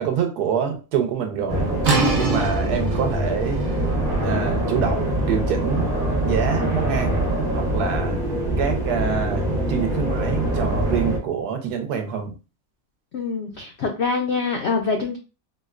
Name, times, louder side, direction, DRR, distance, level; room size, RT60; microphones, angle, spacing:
voice 1, 0.0-1.7 2.1-3.6 4.2-5.9 6.3-7.2 7.5-8.2 8.6-12.3, right 7 dB, 75° right, 5 dB, 1.2 m, -26 dB
sound 1, 1.5-11.2, right 1 dB, 35° right, 0.8 m, -24 dB
sound 2, 1.8-7.5, right 3 dB, 60° right, 0.5 m, -28 dB
voice 2, 13.1-15.2, left 4 dB, 75° left, 2 dB, 0.6 m, -25 dB
4.2 x 2.1 x 2.4 m, 0.32 s
omnidirectional pair, 1.7 m